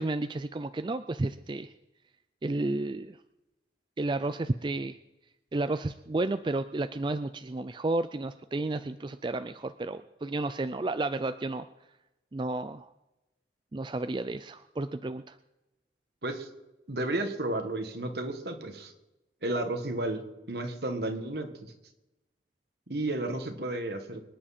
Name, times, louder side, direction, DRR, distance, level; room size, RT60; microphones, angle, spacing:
voice 1, 0.0-1.7 2.4-3.2 4.0-5.0 5.5-11.7 12.3-12.9 13.7-15.4, right 2 dB, 25° right, 11 dB, 0.4 m, -32 dB
voice 2, 16.9-18.9 19.4-20.2 20.5-21.5 22.9-24.2, right 2 dB, 65° right, 5 dB, 1.8 m, -32 dB
25.0 x 9.8 x 4.3 m, 0.98 s
head